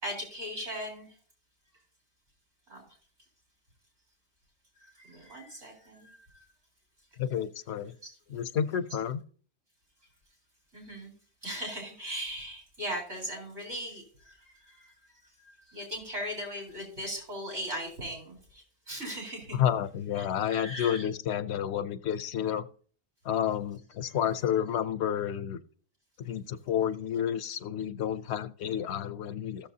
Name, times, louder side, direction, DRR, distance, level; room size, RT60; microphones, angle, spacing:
voice 1, 0.0-1.2 2.7-2.8 4.8-6.4 7.8-7.9 10.7-11.1 11.4-14.9 15.4-19.6 20.2-21.1 24.0-24.2, equal, 85° right, -1 dB, 4.4 m, -39 dB
voice 2, 7.2-7.9 8.3-9.2 19.5-22.7 23.2-25.6 26.2-29.7, left 9 dB, 75° left, 13 dB, 0.8 m, -30 dB
15.0 x 6.9 x 2.7 m, 0.44 s
omnidirectional pair, 1.1 m